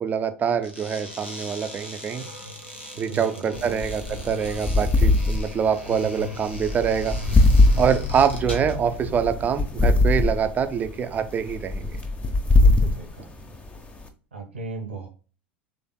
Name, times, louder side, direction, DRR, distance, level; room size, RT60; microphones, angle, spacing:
voice 1, 0.0-2.2 3.0-7.2 7.8-12.0, right 7 dB, 25° right, 9 dB, 0.6 m, -25 dB
sound 1, 0.6-8.8, left 1 dB, 90° left, 1.2 m, -38 dB
voice 2, 3.1-4.0 4.3-4.4 7.7-7.9 12.6-13.5 14.3-15.1, right 3 dB, 80° right, 1 dB, 1.2 m, -37 dB
sound 2, 3.5-14.1, left 2 dB, 20° left, 0.8 m, -22 dB
sound 3, 7.3-11.4, equal, 45° left, 2.3 m, -34 dB
5.8 x 3.4 x 2.2 m, 0.37 s
figure-of-eight pair, 80°, 6 cm